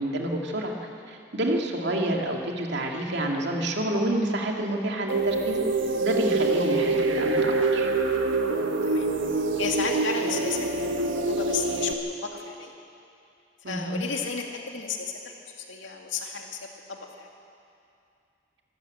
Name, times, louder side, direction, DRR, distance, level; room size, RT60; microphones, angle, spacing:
voice 1, 0.0-5.6 6.0-7.9 13.6-14.0, right 1 dB, 60° right, 1 dB, 2.4 m, -28 dB
sound 1, 5.1-11.9, right 3 dB, 80° right, 1.4 m, -25 dB
voice 2, 8.8-9.1 9.5-12.7 13.6-16.6 16.9-17.3, left 5 dB, 80° left, 1 dB, 2.5 m, -33 dB
24.5 x 13.5 x 8.4 m, 2.6 s
head